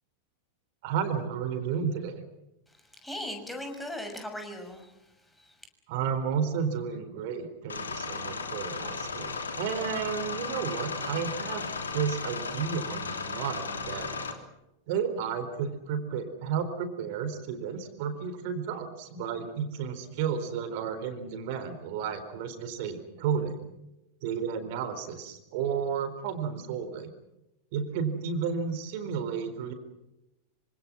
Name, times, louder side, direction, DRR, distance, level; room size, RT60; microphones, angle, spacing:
voice 1, 0.8-2.2 5.9-11.7 11.9-14.1 14.9-23.7 24.2-27.1 27.7-29.7, right 7 dB, 50° right, 10 dB, 4.1 m, -32 dB
voice 2, 3.0-4.9 5.4-5.6, left 1 dB, 5° left, 4 dB, 6.4 m, -38 dB
sound 1, 7.7-14.3, left 4 dB, 70° left, 3.3 m, -35 dB
26.5 x 26.0 x 6.2 m, 0.92 s
figure-of-eight pair, 90°, 0 cm